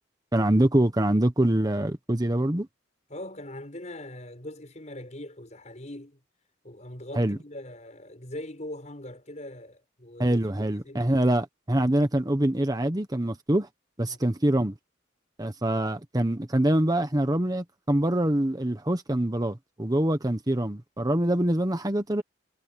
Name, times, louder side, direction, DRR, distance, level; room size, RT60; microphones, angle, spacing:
voice 1, 0.3-2.7 7.1-7.4 10.2-13.7 14.0-14.7 15.4-22.2, right 1 dB, 20° right, 1.1 m, -24 dB
voice 2, 3.1-6.2 6.6-11.0 14.1-14.2, left 1 dB, 40° left, 6.4 m, -41 dB
head